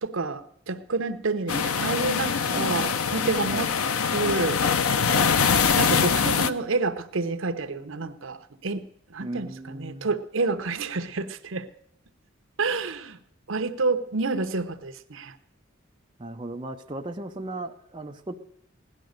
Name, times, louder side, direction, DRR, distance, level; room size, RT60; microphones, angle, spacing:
voice 1, 0.0-3.7 4.1-4.9 5.7-8.4 8.6-11.7 12.6-13.2 13.5-15.3, right 3 dB, 70° right, 9 dB, 0.9 m, -29 dB
sound 1, 1.5-6.5, left 6 dB, 90° left, 0.7 m, -23 dB
voice 2, 9.2-10.1 16.2-18.4, right 2 dB, 25° right, 3 dB, 0.6 m, -36 dB
17.0 x 11.0 x 6.5 m, 0.69 s
head